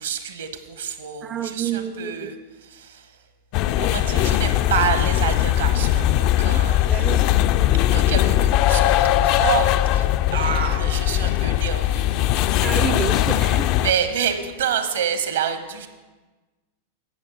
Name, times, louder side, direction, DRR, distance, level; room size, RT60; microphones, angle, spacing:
voice 1, 0.0-3.2 3.8-7.0 7.9-13.0 13.7-15.9, right 8 dB, 65° right, 8 dB, 1.2 m, -28 dB
voice 2, 1.2-2.3 6.8-7.2 12.6-13.7, right 9 dB, 30° right, 10 dB, 0.4 m, -29 dB
sound 1, 3.5-13.9, left 13 dB, 40° left, 0.4 m, -20 dB
15.0 x 7.2 x 5.0 m, 1.2 s
figure-of-eight pair, 90°, 0 cm